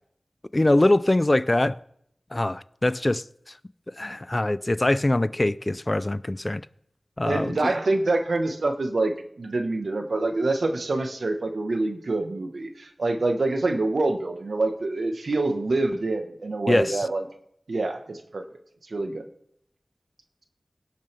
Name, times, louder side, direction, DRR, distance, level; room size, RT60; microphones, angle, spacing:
voice 1, 0.5-1.8 2.3-3.2 4.0-6.6 7.2-7.7 16.7-17.0, left 1 dB, 35° left, 0.4 m, -23 dB
voice 2, 7.3-17.2 17.7-18.4 18.9-19.2, right 2 dB, 85° right, 1.2 m, -26 dB
17.5 x 7.4 x 3.4 m
wide cardioid pair, 45°, 0 cm